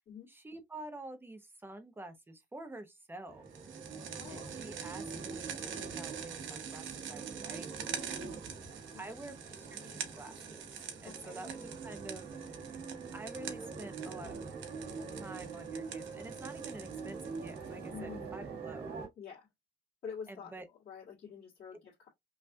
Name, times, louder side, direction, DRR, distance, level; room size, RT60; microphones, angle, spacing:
voice 1, 0.3-3.4 4.3-5.5 5.8-7.7 9.0-10.7 11.0-12.3 13.1-14.4 15.1-18.9 20.3-20.7, right 2 dB, 10° right, 0.7 m, -48 dB
sound 1, 3.3-19.1, right 5 dB, 55° right, 1.5 m, -44 dB
sound 2, 3.5-17.9, right 8 dB, 75° right, 1.0 m, -46 dB
voice 2, 4.2-4.6 8.9-9.0 11.0-11.4 17.9-18.3 19.2-19.5 20.0-20.5 20.9-22.1, left 7 dB, 55° left, 1.8 m, -47 dB
5.5 x 2.4 x 2.6 m
cardioid pair, 170°, 20 cm